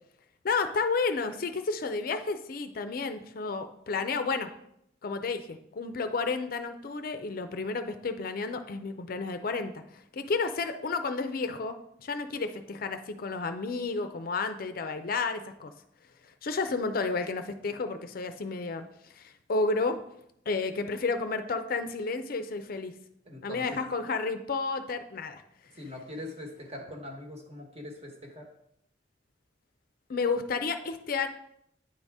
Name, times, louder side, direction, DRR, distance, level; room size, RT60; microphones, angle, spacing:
voice 1, 0.4-4.5 5.0-9.8 10.1-15.7 16.4-18.8 19.1-20.0 20.5-22.9 23.4-25.4 30.1-31.3, left 4 dB, 55° left, 8 dB, 0.5 m, -31 dB
voice 2, 23.2-23.8 25.7-28.5, left 1 dB, 35° right, 2 dB, 1.3 m, -42 dB
9.2 x 4.0 x 3.5 m, 0.73 s
head